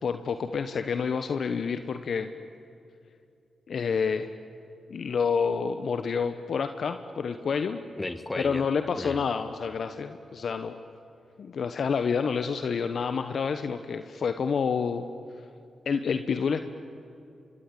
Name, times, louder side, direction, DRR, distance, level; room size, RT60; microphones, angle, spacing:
voice 1, 0.0-2.3 3.7-4.3 4.9-7.8 8.3-10.8 11.4-15.0 15.8-16.6, left 6 dB, 65° left, 9 dB, 1.1 m, -28 dB
voice 2, 8.0-8.7 8.9-9.3, left 2 dB, 30° left, 11 dB, 1.9 m, -34 dB
26.0 x 24.5 x 9.3 m, 2.5 s
supercardioid pair, 40°, 0 cm